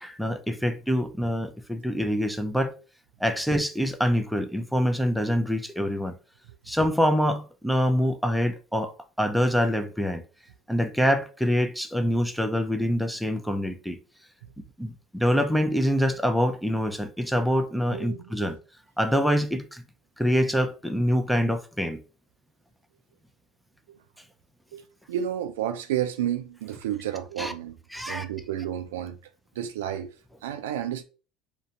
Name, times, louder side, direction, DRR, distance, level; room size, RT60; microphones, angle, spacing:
voice 1, 0.0-2.8 3.2-6.2 6.7-10.2 10.7-14.0 14.8-18.6 19.0-19.8 20.2-22.0 27.4-27.5 27.9-28.3, equal, ahead, 0.4 m, -25 dB
voice 2, 17.9-18.6 23.9-24.0 24.7-24.8 25.1-27.8 28.1-30.1 30.4-31.0, right 10 dB, 85° right, 0.3 m, -31 dB
2.5 x 2.1 x 2.7 m
hypercardioid pair, 85°, 0 cm